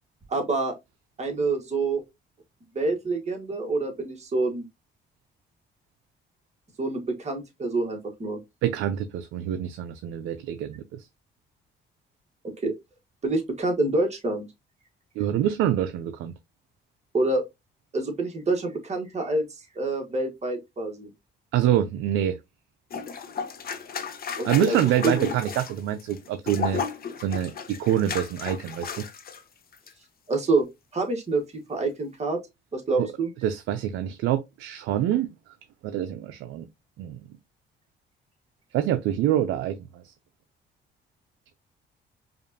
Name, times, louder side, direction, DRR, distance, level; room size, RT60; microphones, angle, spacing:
voice 1, 0.3-0.7 1.2-2.0 2.7-4.6 6.8-8.4 12.6-12.7 13.2-14.4 17.1-17.4 17.9-19.4 19.7-21.1 24.4-24.8 25.0-25.3 30.3-30.6 30.9-31.4 31.7-32.4 32.7-33.3, right 2 dB, 35° right, 1.5 m, -26 dB
voice 2, 8.6-11.1 15.2-16.3 21.5-22.4 24.4-26.8 27.2-28.9 33.0-33.1 33.4-35.3 35.8-36.7 37.0-37.2 38.7-40.1, right 11 dB, 90° right, 0.4 m, -26 dB
sound 1, 22.9-29.4 29.7-29.9, left 6 dB, 50° left, 0.8 m, -34 dB
5.1 x 2.5 x 2.6 m
cardioid pair, 90°, 20 cm